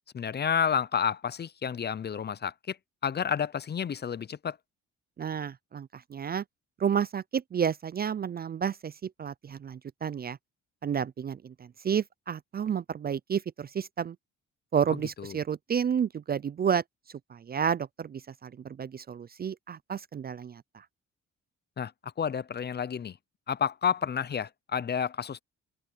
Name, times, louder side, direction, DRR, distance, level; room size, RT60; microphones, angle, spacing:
voice 1, 0.1-2.8 3.0-4.6 15.2-15.4 21.8-23.2 23.5-25.4, left 7 dB, 35° left, 0.6 m, -30 dB
voice 2, 5.2-6.4 6.8-10.4 10.8-14.2 14.7-16.8 17.3-20.8, right 7 dB, 30° right, 0.4 m, -31 dB
open air
cardioid pair, 90°, 30 cm